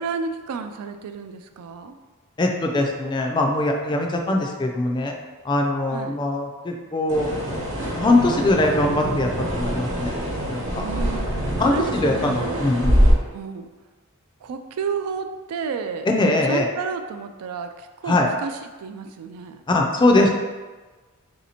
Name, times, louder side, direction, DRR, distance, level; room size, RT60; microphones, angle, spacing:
voice 1, 0.0-1.9 5.9-6.2 10.7-12.7 13.3-13.7 14.4-18.5 18.8-19.6, right 5 dB, 85° right, 7 dB, 0.3 m, -31 dB
voice 2, 2.4-5.1 5.4-7.3 7.8-9.3 9.5-10.1 10.5-10.8 11.6-13.0 16.2-16.7 18.1-18.3 19.7-20.3, left 2 dB, 20° left, 2 dB, 0.3 m, -21 dB
sound 1, 7.1-13.1, equal, 60° right, 1.1 m, -24 dB
3.2 x 2.8 x 4.2 m, 1.3 s
head